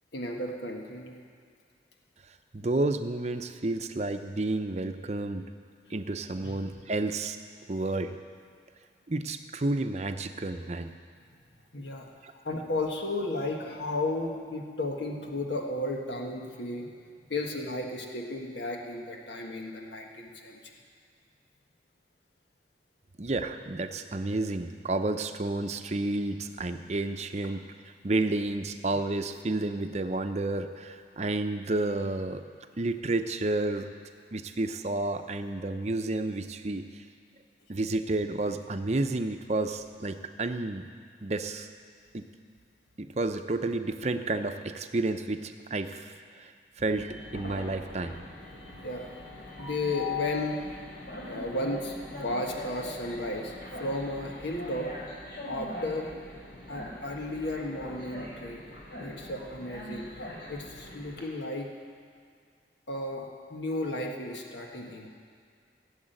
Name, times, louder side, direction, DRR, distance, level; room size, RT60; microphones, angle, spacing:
voice 1, 0.1-1.1 6.4-6.6 11.7-12.1 12.4-16.9 17.3-20.6 48.8-49.1 49.6-50.6 51.2-53.5 53.8-54.9 55.5-56.1 56.7-58.6 59.0-61.7 62.9-65.1, left 2 dB, 80° left, 1 dB, 1.5 m, -34 dB
voice 2, 2.5-5.4 5.9-7.4 7.7-8.2 9.1-10.9 12.2-12.3 23.2-27.6 28.0-32.4 32.8-33.9 34.3-36.8 37.7-40.8 41.2-41.7 42.1-42.3 43.0-46.5 46.8-48.2, right 2 dB, 40° right, 7 dB, 0.7 m, -31 dB
Train, 46.8-61.2, left 2 dB, 65° left, 3.6 m, -41 dB
16.5 x 7.4 x 9.0 m, 2.2 s
head